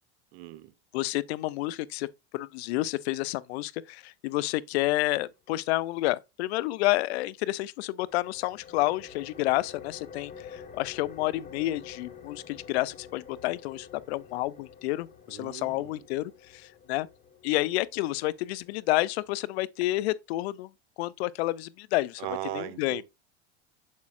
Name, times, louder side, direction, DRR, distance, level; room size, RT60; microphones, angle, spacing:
voice 1, 0.3-0.7 15.3-16.0 22.2-23.0, right 14 dB, 60° right, 1.1 m, -38 dB
voice 2, 0.9-2.1 2.3-17.1 17.4-20.7 21.0-22.2 22.5-23.0, left 18 dB, 70° left, 0.5 m, -30 dB
sound 1, 8.0-19.4, left 6 dB, 25° left, 1.2 m, -49 dB
6.8 x 6.4 x 2.4 m
hypercardioid pair, 90°, 33 cm